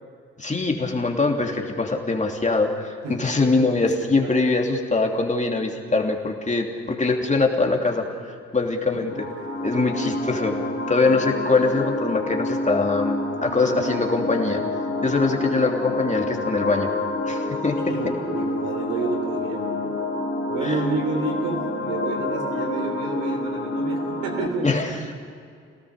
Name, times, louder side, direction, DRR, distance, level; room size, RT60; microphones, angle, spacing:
voice 1, 0.4-8.1 8.5-9.3 9.6-10.6 10.9-14.6 15.0-16.9 17.2-17.8 20.6-20.8 24.6-24.9, left 3 dB, 20° left, 1 dB, 3.0 m, -23 dB
voice 2, 3.0-4.3 15.1-15.2 17.8-19.9 20.5-24.8, right 3 dB, 65° right, 3 dB, 3.4 m, -30 dB
sound 1, 9.1-24.5, left 2 dB, 40° left, 4.8 m, -28 dB
26.5 x 18.0 x 6.7 m, 2.3 s
figure-of-eight pair, 45°, 34 cm